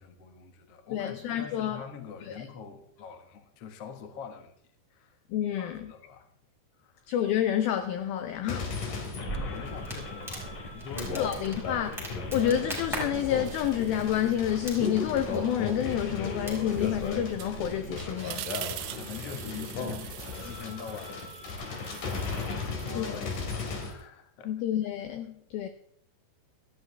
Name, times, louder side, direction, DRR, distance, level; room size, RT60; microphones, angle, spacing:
voice 1, 0.0-4.5 4.9-5.2 5.6-6.3 6.8-7.1 9.3-11.3 11.6-11.8 18.9-24.5, left 7 dB, 70° left, 1.4 m, -44 dB
voice 2, 0.9-1.8 2.4-2.5 5.3-5.9 7.1-8.7 11.1-12.1 12.3-18.5 23.0-23.1 24.5-25.7, left 10 dB, 85° left, 2.1 m, -29 dB
sound 1, 8.5-23.9, left 4 dB, 50° left, 3.5 m, -36 dB
Crackle, 9.3-17.9, right 2 dB, ahead, 5.0 m, -41 dB
sound 2, 13.5-15.0 15.4-24.1, right 15 dB, 85° right, 3.1 m, -45 dB
18.0 x 14.0 x 3.4 m
omnidirectional pair, 5.2 m